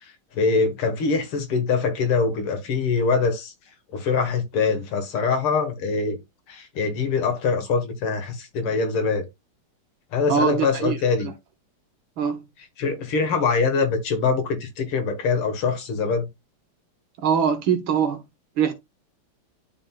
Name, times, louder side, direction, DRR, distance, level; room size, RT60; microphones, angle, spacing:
voice 1, 0.0-3.5 3.9-6.2 6.5-9.3 10.1-11.3 12.8-16.3, left 4 dB, 85° left, 2.3 m, -23 dB
voice 2, 10.3-11.0 12.2-12.4 17.2-18.2 18.6-18.7, right 7 dB, 75° right, 1.7 m, -22 dB
11.5 x 3.8 x 2.3 m
omnidirectional pair, 2.4 m